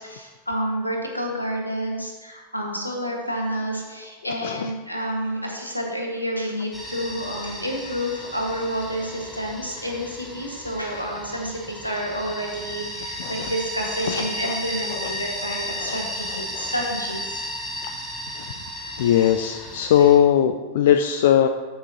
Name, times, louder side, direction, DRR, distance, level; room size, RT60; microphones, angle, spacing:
voice 1, 0.0-17.4, equal, 85° left, 0 dB, 1.5 m, -29 dB
voice 2, 4.2-4.7 13.2-13.5 14.0-14.6 14.9-15.1 15.8-16.0 16.3-16.7 17.8-18.0 18.3-18.6 19.0-21.5, left 10 dB, 55° left, 7 dB, 0.4 m, -21 dB
sound 1, 6.7-20.2, equal, 5° left, 1.5 m, -34 dB
13.5 x 6.0 x 2.8 m, 1.3 s
figure-of-eight pair, 90°, 0 cm